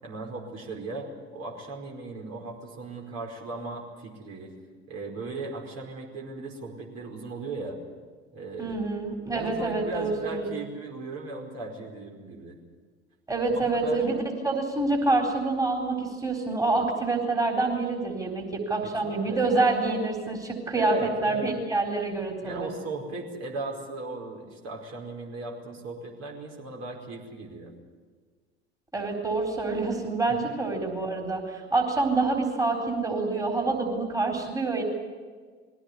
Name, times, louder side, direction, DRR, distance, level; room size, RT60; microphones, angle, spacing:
voice 1, 0.0-4.5 4.9-7.8 8.3-8.8 9.3-12.6 13.5-14.0 18.8-19.5 20.7-21.5 22.4-27.7, right 3 dB, 50° right, 0 dB, 5.0 m, -37 dB
voice 2, 8.6-10.5 13.3-22.7 28.9-34.8, right 3 dB, 10° right, 1 dB, 4.1 m, -27 dB
21.5 x 17.0 x 9.7 m, 1.5 s
figure-of-eight pair, 70°, 34 cm